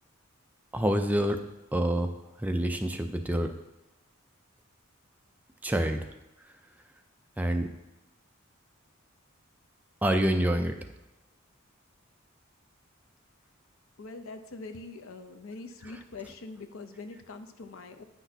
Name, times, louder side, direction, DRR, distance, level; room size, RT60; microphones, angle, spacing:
voice 1, 0.7-1.4 1.7-2.1 2.4-3.5 5.6-6.1 7.4-7.7 10.0-10.7, right 1 dB, 10° right, 5 dB, 0.4 m, -26 dB
voice 2, 14.0-18.0, left 3 dB, 80° left, 7 dB, 0.6 m, -43 dB
9.8 x 5.9 x 2.8 m, 0.94 s
head